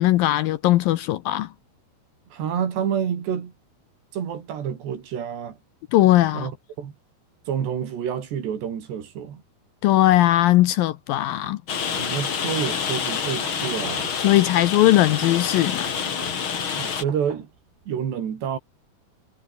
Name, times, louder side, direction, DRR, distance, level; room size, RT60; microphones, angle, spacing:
voice 1, 0.0-1.5 5.9-6.5 9.8-11.6 14.2-15.9, left 15 dB, 75° left, 2.2 m, -19 dB
voice 2, 2.3-3.5 4.1-5.6 6.3-6.5 6.8-6.9 7.5-9.4 12.0-14.1 16.8-17.5 17.9-18.6, right 8 dB, 85° right, 5.5 m, -28 dB
Rain, 11.7-17.0, left 7 dB, 40° left, 2.2 m, -27 dB
sound 1, 12.9-17.9, right 7 dB, 65° right, 4.9 m, -45 dB
omnidirectional pair, 4.8 m